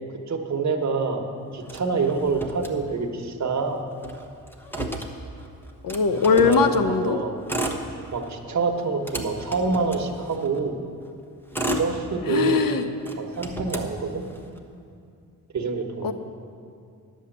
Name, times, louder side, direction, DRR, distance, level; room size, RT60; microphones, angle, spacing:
voice 1, 0.3-1.2 1.5-3.8 6.1-7.3 8.1-10.8 11.8-12.7 13.1-14.2 15.5-16.1, right 4 dB, 50° right, 3 dB, 1.3 m, -26 dB
Motor vehicle (road), 1.6-3.3 3.6-3.7 3.9-6.7 7.3-8.4 8.8-10.6 11.2-12.6 13.0-14.6, equal, 5° left, 1.1 m, -33 dB
voice 2, 5.8-7.2 12.3-12.8 16.0-16.1, left 5 dB, 65° left, 9 dB, 0.9 m, -20 dB
10.0 x 7.3 x 7.8 m, 2.3 s
cardioid pair, 70°, 37 cm